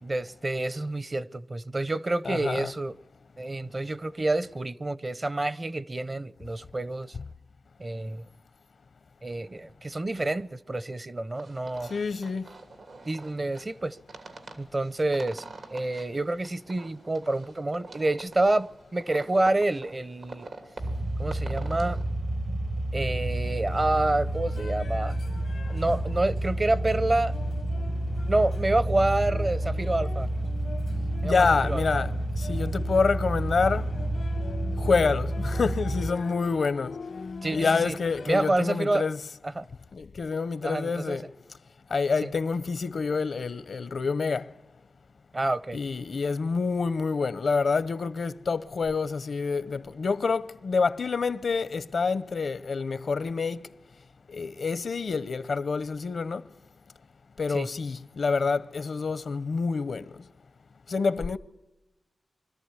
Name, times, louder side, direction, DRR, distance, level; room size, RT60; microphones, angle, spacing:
voice 1, 0.0-3.0 3.4-7.1 7.8-8.3 9.2-11.9 13.1-14.0 14.6-15.4 15.7-20.5 21.2-22.0 22.9-25.1 25.7-27.3 28.3-30.3 31.2-31.9 37.4-38.0 38.3-39.1 39.6-39.7 40.6-41.2 42.2-42.3 45.3-45.8 57.5-57.7, right 2 dB, 30° right, 0.6 m, -28 dB
voice 2, 2.3-2.7 11.8-12.5 31.2-33.9 34.8-37.0 37.5-39.2 39.9-41.3 41.9-44.5 45.7-53.7 54.3-56.5 57.4-60.3 60.9-61.4, left 4 dB, 70° left, 0.7 m, -27 dB
sound 1, 11.3-22.1, right 3 dB, 85° right, 2.7 m, -46 dB
sound 2, 20.8-36.1, right 1 dB, 70° right, 1.5 m, -30 dB
sound 3, 23.5-38.4, left 4 dB, 90° left, 1.0 m, -43 dB
24.5 x 14.0 x 9.7 m
wide cardioid pair, 95°, 0 cm